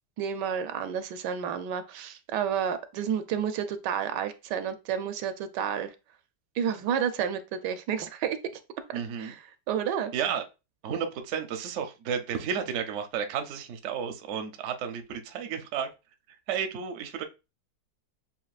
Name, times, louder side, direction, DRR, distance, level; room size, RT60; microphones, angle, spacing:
voice 1, 0.2-5.9 6.6-8.4 9.2-9.4 9.7-10.1, right 8 dB, 80° right, 10 dB, 1.2 m, -30 dB
voice 2, 8.9-9.3 10.1-10.4 10.8-15.9 16.5-17.2, right 7 dB, 60° right, 7 dB, 0.8 m, -32 dB
7.3 x 2.7 x 2.4 m, 0.28 s
omnidirectional pair, 1.9 m